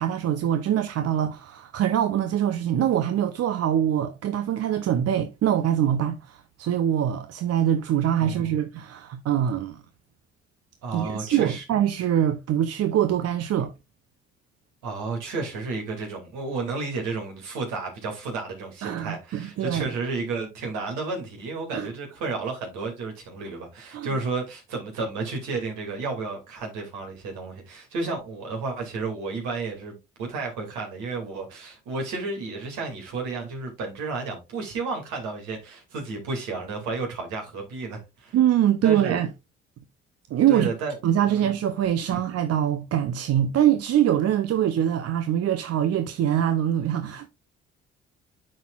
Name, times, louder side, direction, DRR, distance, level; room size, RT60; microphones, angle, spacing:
voice 1, 0.0-9.8 10.9-13.7 18.8-19.9 21.7-21.9 23.9-24.1 38.3-39.3 40.3-40.7 41.0-47.3, right 10 dB, 55° right, 0.6 m, -24 dB
voice 2, 10.8-11.6 14.8-38.4 38.8-39.2 40.5-41.0 41.3-41.4 42.1-42.2, right 3 dB, 75° right, 2.3 m, -32 dB
10.0 x 4.2 x 2.3 m
hypercardioid pair, 50°, 31 cm